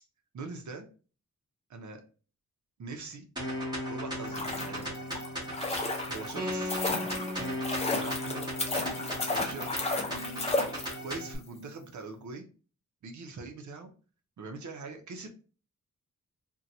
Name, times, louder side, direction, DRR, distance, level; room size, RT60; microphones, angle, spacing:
voice 1, 0.3-0.8 1.7-2.0 2.8-3.2 3.9-4.9 6.1-6.7 7.9-8.5 9.2-9.9 11.0-12.5 13.0-13.9 14.4-15.3, right 4 dB, 70° right, 4 dB, 0.7 m, -42 dB
sound 1, 3.4-11.4, equal, 15° right, 1.1 m, -36 dB
sound 2, 4.1-11.3 11.6-11.7, left 2 dB, 20° left, 0.5 m, -33 dB
2.8 x 2.2 x 3.8 m, 0.37 s
wide cardioid pair, 180°, 30 cm